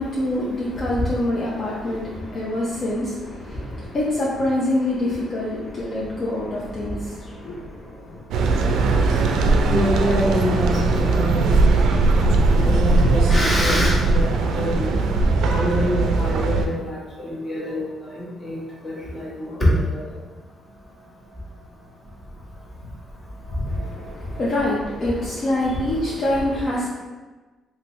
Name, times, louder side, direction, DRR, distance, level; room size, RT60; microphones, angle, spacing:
voice 1, 0.0-8.2 23.7-26.9, left 1 dB, 50° left, -6 dB, 0.7 m, -26 dB
sound 1, 8.3-16.7, right 3 dB, 80° right, 0.4 m, -19 dB
voice 2, 9.7-11.7 12.2-14.9 15.5-17.0 17.2-17.9 18.1-20.0, equal, 35° left, -6 dB, 1.3 m, -24 dB
3.4 x 2.8 x 3.0 m, 1.2 s
cardioid pair, 90°, 0 cm